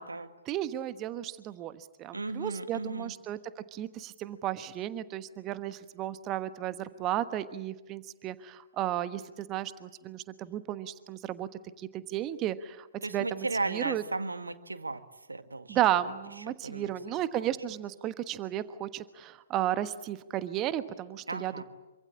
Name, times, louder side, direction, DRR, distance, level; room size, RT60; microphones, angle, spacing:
voice 1, 0.5-3.4 3.7-11.5 11.8-12.9 13.1-14.0 15.7-21.6, right 12 dB, 25° right, 13 dB, 1.2 m, -33 dB
voice 2, 2.1-3.1 13.0-15.0 15.3-15.8 16.5-16.9 17.4-17.5 21.3-21.6, right 3 dB, 75° right, 9 dB, 2.0 m, -35 dB
27.5 x 25.5 x 8.7 m, 1.1 s
figure-of-eight pair, 120°, 0 cm